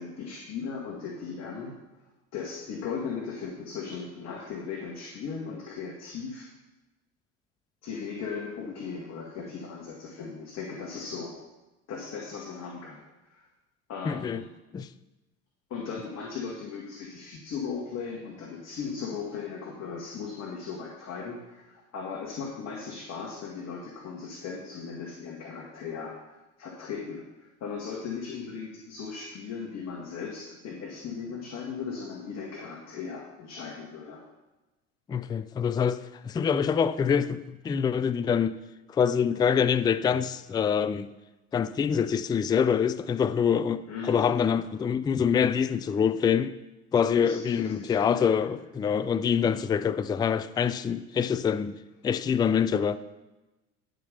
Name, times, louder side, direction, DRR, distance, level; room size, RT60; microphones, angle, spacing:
voice 1, 0.0-1.7 2.3-6.5 7.8-11.3 11.9-13.5 13.9-14.5 15.7-34.2 43.9-44.3 47.1-48.5, left 5 dB, 45° left, 2.0 m, -37 dB
voice 2, 14.1-14.4 14.7-14.9 35.1-38.5 38.9-41.1 41.5-46.5 46.9-51.8 52.0-53.0, left 7 dB, 10° left, 0.3 m, -25 dB
10.5 x 5.2 x 6.8 m
hypercardioid pair, 80°, 36 cm